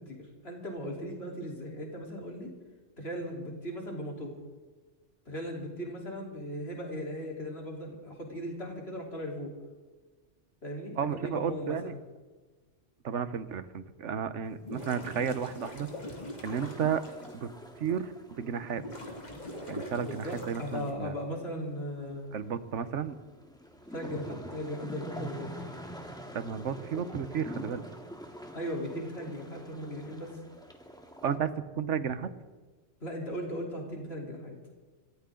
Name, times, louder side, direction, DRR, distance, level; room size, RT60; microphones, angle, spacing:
voice 1, 0.0-2.5 3.0-4.4 5.3-9.5 10.6-12.0 19.9-22.2 23.9-25.5 28.5-30.3 33.0-34.5, equal, 55° left, -1 dB, 4.1 m, -38 dB
voice 2, 11.0-11.9 13.0-15.9 16.4-17.0 17.3-17.5 17.8-18.8 19.7-21.1 22.3-23.2 26.3-27.8 31.2-32.3, right 7 dB, 80° right, 12 dB, 1.3 m, -33 dB
sound 1, 14.5-17.3 17.9-18.0 18.7-20.9, left 1 dB, 35° left, 2.6 m, -42 dB
sound 2, 16.4-31.4, equal, 5° left, 1.7 m, -46 dB
26.5 x 14.5 x 3.8 m, 1.3 s
omnidirectional pair, 1.2 m